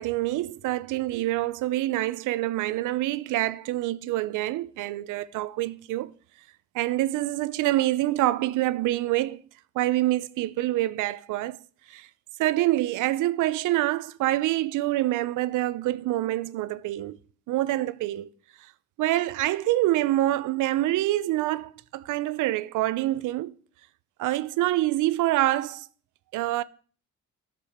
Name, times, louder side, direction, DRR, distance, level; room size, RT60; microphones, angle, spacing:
voice 1, 0.0-6.1 6.7-9.4 9.8-11.6 11.9-12.1 12.4-17.2 17.5-18.3 19.0-23.5 24.2-25.9 26.3-26.6, right 16 dB, 85° right, 0.5 m, -26 dB
10.0 x 6.7 x 3.4 m
cardioid pair, 90°, 30 cm